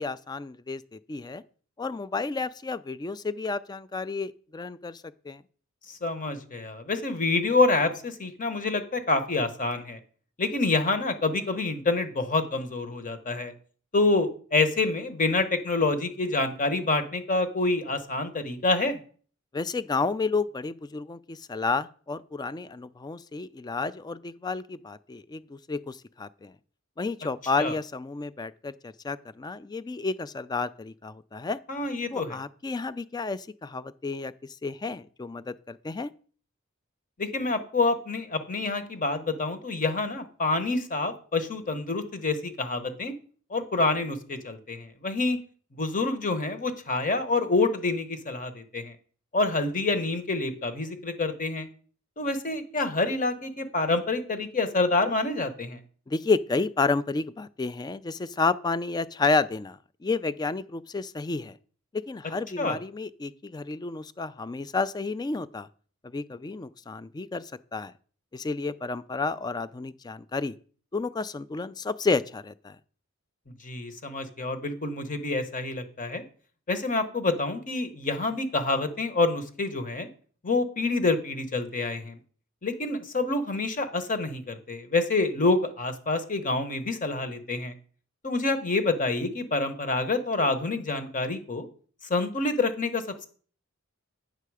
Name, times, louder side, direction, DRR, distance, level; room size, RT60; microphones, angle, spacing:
voice 1, 0.0-1.4 1.8-5.4 19.5-26.5 27.0-31.6 32.1-34.3 34.6-36.1 56.1-61.6 61.9-65.7 66.0-67.9 68.3-70.5 70.9-72.8, left 3 dB, 20° left, 0.3 m, -31 dB
voice 2, 6.0-10.0 10.4-13.5 13.9-19.0 27.6-27.8 31.7-32.4 37.2-43.1 43.5-45.4 45.8-48.9 49.3-51.7 52.2-55.8 62.6-62.8 73.6-76.2 76.7-80.1 80.4-82.2 82.6-87.7 88.2-91.7 92.1-93.3, left 3 dB, 40° left, 1.1 m, -27 dB
9.2 x 6.7 x 4.8 m
head